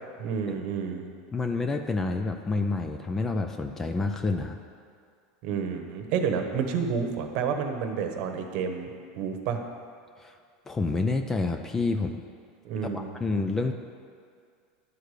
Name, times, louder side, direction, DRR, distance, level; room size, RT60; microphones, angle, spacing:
voice 1, 0.2-1.1 5.4-9.6 12.6-13.1, right 6 dB, 50° right, 5 dB, 1.0 m, -30 dB
voice 2, 1.3-4.6 10.2-10.3 10.7-12.2 12.9-13.7, left 3 dB, 15° left, 6 dB, 0.4 m, -28 dB
11.0 x 4.8 x 6.7 m, 2.2 s
supercardioid pair, 150°, 3 cm